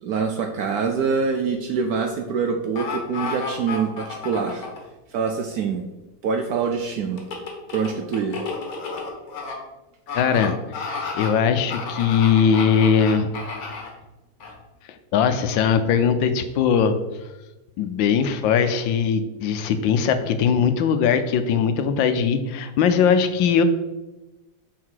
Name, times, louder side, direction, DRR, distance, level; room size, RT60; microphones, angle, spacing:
voice 1, 0.0-4.7 5.1-5.8 6.2-7.2 7.7-8.4, right 5 dB, 70° right, 4 dB, 0.9 m, -25 dB
sound 1, 2.8-4.8 7.2-9.5 10.1-10.5 10.7-11.3 11.7-13.9 14.4-14.5, left 4 dB, 55° left, 1.5 m, -31 dB
voice 2, 10.1-10.8 11.1-13.3 14.9-17.0 17.8-23.6, left 7 dB, 80° left, 9 dB, 1.3 m, -20 dB
5.8 x 4.7 x 4.6 m, 1.0 s
omnidirectional pair, 2.1 m